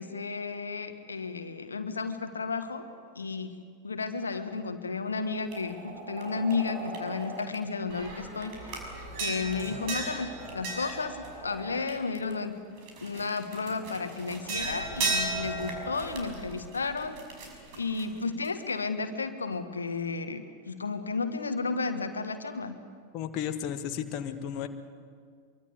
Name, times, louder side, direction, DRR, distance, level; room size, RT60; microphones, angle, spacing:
voice 1, 0.0-2.9 3.1-8.7 9.2-12.6 13.0-17.2 17.8-22.8, left 4 dB, 75° left, 8 dB, 1.4 m, -33 dB
sound 1, 5.5-7.5 7.9-12.3 12.8-18.7, right 3 dB, 45° right, 5.9 m, -36 dB
voice 2, 23.1-24.7, left 9 dB, 40° left, 7 dB, 1.5 m, -33 dB
25.0 x 23.5 x 8.1 m, 2.1 s
figure-of-eight pair, 90°, 0 cm